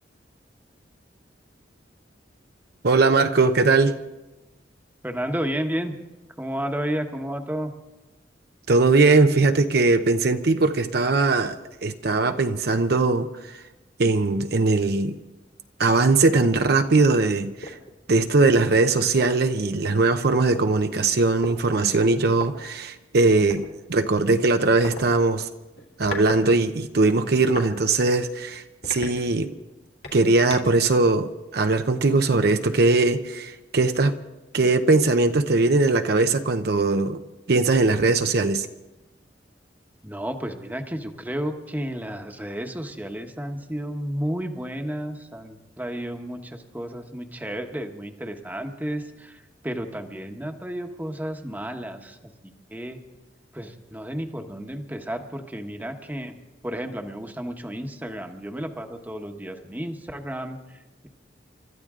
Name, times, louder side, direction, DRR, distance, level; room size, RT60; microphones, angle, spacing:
voice 1, 2.8-4.0 8.7-13.6 14.0-15.2 15.8-17.8 18.1-25.5 26.0-29.5 30.1-34.2 34.5-37.2 37.5-38.7, right 3 dB, 60° right, 0.7 m, -20 dB
voice 2, 5.0-6.0 6.4-7.7 40.0-53.0 53.5-56.4 56.6-61.1, equal, 10° right, 1.1 m, -32 dB
sound 1, 16.4-16.6 17.1-17.2 17.6-17.9 18.9-19.0 19.2-20.6 21.4-21.6 22.3-22.5 23.5-23.7 24.8-25.0 25.8-26.5 26.8-27.7 28.2-28.3 28.8-29.6 30.0-30.8, left 2 dB, 65° left, 2.6 m, -37 dB
29.5 x 13.0 x 3.7 m
head